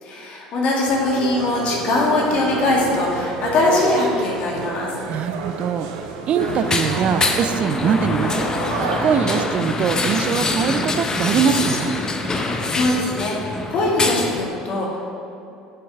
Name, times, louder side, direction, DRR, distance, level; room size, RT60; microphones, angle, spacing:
voice 1, 0.0-4.9 12.6-15.0, left 2 dB, 55° left, -3 dB, 2.3 m, -21 dB
sound 1, 0.9-9.5, right 4 dB, 75° right, 0.9 m, -29 dB
voice 2, 5.1-5.9 6.3-8.5 9.0-11.9, right 7 dB, 50° right, 10 dB, 0.6 m, -22 dB
sound 2, 6.4-14.5, left 3 dB, 25° left, 1.0 m, -24 dB
10.0 x 7.6 x 3.6 m, 2.7 s
hypercardioid pair, 70°, 3 cm